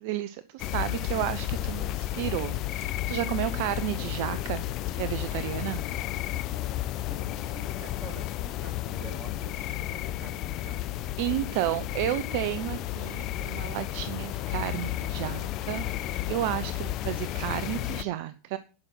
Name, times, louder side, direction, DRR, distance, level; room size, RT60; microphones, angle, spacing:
voice 1, 0.0-4.6 4.9-5.8 11.2-18.6, right 14 dB, 60° right, 14 dB, 0.6 m, -32 dB
sound 1, 0.6-18.0, left 14 dB, 45° left, 0.7 m, -32 dB
voice 2, 7.1-10.8, right 5 dB, 35° right, 5 dB, 3.1 m, -48 dB
11.5 x 6.2 x 6.1 m, 0.35 s
hypercardioid pair, 95°, 0 cm